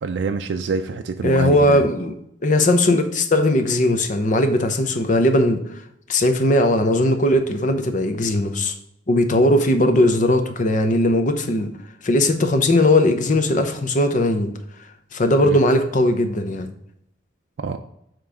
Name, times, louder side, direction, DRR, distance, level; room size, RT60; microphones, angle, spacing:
voice 1, 0.0-1.8 15.4-15.6 17.6-17.8, right 4 dB, 70° right, 6 dB, 0.4 m, -26 dB
voice 2, 1.2-2.1 2.4-5.6 6.1-8.7 9.1-11.7 12.0-14.5 15.1-16.7, left 1 dB, 45° left, 7 dB, 0.6 m, -18 dB
7.0 x 3.1 x 4.9 m, 0.77 s
head